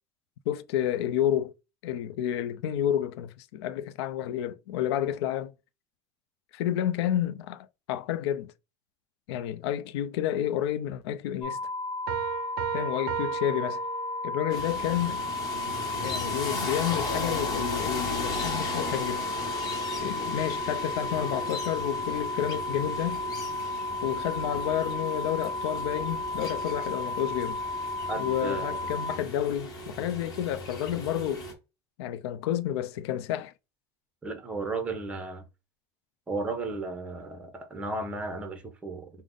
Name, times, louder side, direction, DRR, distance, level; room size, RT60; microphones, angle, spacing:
voice 1, 0.5-1.5 1.8-5.5 6.5-8.5 9.3-11.6 12.7-13.8 14.2-15.2 16.0-19.3 20.0-23.2 24.0-27.6 28.2-31.5 32.0-33.5, left 11 dB, 85° left, 0.4 m, -30 dB
sound 1, 11.4-29.2, left 2 dB, 65° left, 1.1 m, -34 dB
sound 2, 12.1-14.6, right 14 dB, 70° right, 0.4 m, -35 dB
sound 3, 14.5-31.5, left 1 dB, 30° left, 1.2 m, -36 dB
voice 2, 28.1-28.9 34.2-35.4 36.3-39.1, right 3 dB, 10° right, 0.6 m, -34 dB
3.5 x 2.0 x 3.8 m
cardioid pair, 165°, 13 cm